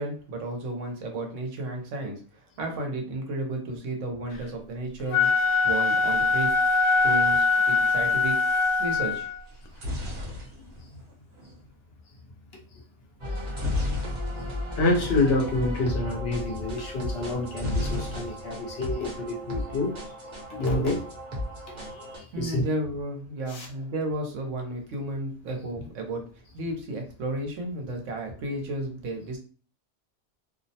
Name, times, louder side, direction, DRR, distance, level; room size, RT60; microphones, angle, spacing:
voice 1, 0.0-5.3 5.6-6.6 7.0-8.4 8.8-9.3 22.3-26.3 26.5-29.4, right 1 dB, 90° right, 1.1 m, -33 dB
Wind instrument woodwind instrument, 5.0-9.4, left 4 dB, 85° left, 0.9 m, -22 dB
sound 1, 9.5-11.6 13.5-14.7 15.0-15.1 15.4-15.6 17.5-18.7 19.0-19.6, left 2 dB, 60° right, 1.1 m, -33 dB
sound 2, 13.2-22.2, left 1 dB, 40° right, 0.8 m, -35 dB
voice 2, 14.8-19.9 20.5-21.0 21.7-22.6 23.5-23.7, left 2 dB, 60° left, 0.9 m, -28 dB
2.6 x 2.0 x 2.7 m
omnidirectional pair, 1.3 m